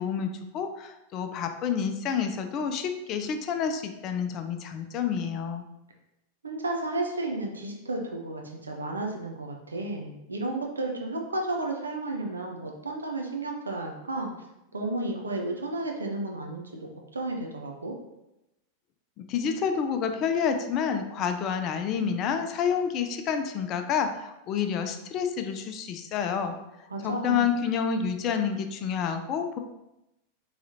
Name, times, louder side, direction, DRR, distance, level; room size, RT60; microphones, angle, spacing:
voice 1, 0.0-5.6 19.2-26.6 27.0-29.6, left 7 dB, 35° left, 7 dB, 0.4 m, -29 dB
voice 2, 6.4-14.3 14.7-16.9 17.1-18.0 26.9-27.5, right 2 dB, 75° right, 2 dB, 0.7 m, -32 dB
4.8 x 3.2 x 2.7 m, 0.90 s
figure-of-eight pair, 90°, 0 cm